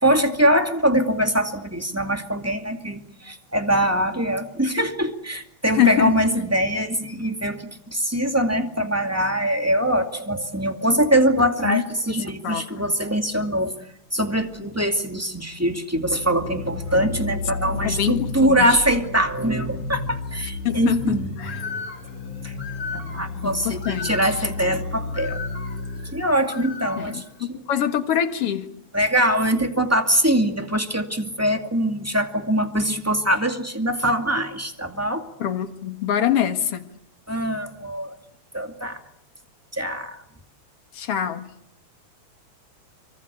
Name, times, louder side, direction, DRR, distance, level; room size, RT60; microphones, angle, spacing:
voice 1, 0.0-13.7 14.1-21.3 22.4-22.5 22.9-25.4 26.1-27.6 28.9-35.3 37.3-38.2 38.5-39.0 39.7-40.2, equal, 5° right, 1.8 m, -23 dB
voice 2, 5.8-6.2 11.6-11.8 12.4-12.6 17.8-18.8 20.6-21.5 23.4-24.3 27.0-28.7 35.4-36.9 40.9-41.5, left 10 dB, 55° left, 2.4 m, -24 dB
sound 1, 14.1-26.3, right 3 dB, 85° right, 8.8 m, -43 dB
sound 2, 16.0-26.3, left 3 dB, 85° left, 2.7 m, -33 dB
Bird, 21.4-27.4, left 4 dB, 30° left, 3.5 m, -37 dB
26.5 x 24.0 x 8.4 m
omnidirectional pair, 3.4 m